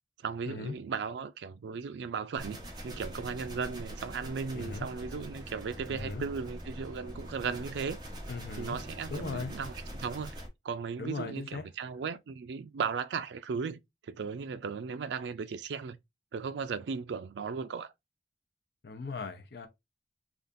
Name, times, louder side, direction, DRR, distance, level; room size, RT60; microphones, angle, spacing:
voice 1, 0.2-8.0 8.6-16.0 16.3-17.9, right 5 dB, 85° right, 0.4 m, -36 dB
sound 1, 2.4-10.5, equal, 25° right, 0.9 m, -43 dB
voice 2, 4.5-4.9 5.9-6.2 8.3-8.8 9.1-9.5 11.0-11.6 18.8-19.7, left 4 dB, 65° left, 0.5 m, -38 dB
3.6 x 2.4 x 2.5 m
head